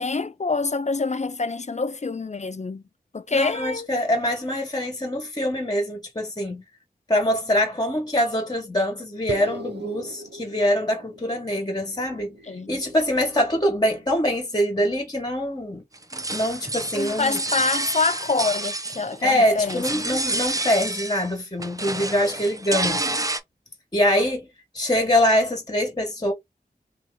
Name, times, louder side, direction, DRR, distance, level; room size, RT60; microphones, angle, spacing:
voice 1, 0.0-2.8 3.1-3.9 12.5-12.7 16.9-20.2 22.9-23.2, left 4 dB, 40° left, 0.4 m, -26 dB
voice 2, 3.3-6.6 7.1-15.8 16.1-17.4 19.2-23.0 23.9-24.5 24.7-26.3, equal, 25° left, 1.4 m, -24 dB
sound 1, 9.3-14.1, right 1 dB, 85° right, 0.7 m, -39 dB
sound 2, 15.9-19.3 19.6-21.3 21.6-23.4, right 2 dB, 20° right, 0.6 m, -29 dB
2.8 x 2.8 x 3.6 m
wide cardioid pair, 65°, 17 cm